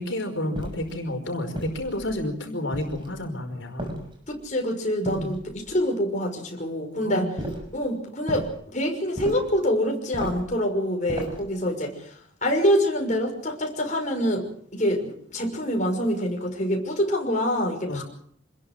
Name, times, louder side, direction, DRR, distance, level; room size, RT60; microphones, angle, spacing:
voice 1, 0.0-4.0 5.1-5.4 7.0-7.4 17.8-18.0, left 1 dB, 65° left, 5 dB, 5.1 m, -30 dB
sound 1, 0.5-1.0 1.5-2.2 2.7-3.2 3.8-4.4 5.0-5.7 7.4-7.7 8.3-8.5 9.2-9.6 10.1-10.5 11.1-11.5, right 1 dB, 25° right, 6.1 m, -35 dB
voice 2, 4.3-7.3 7.7-18.0, equal, 35° left, 1 dB, 6.0 m, -26 dB
27.0 x 21.0 x 6.4 m, 0.64 s
head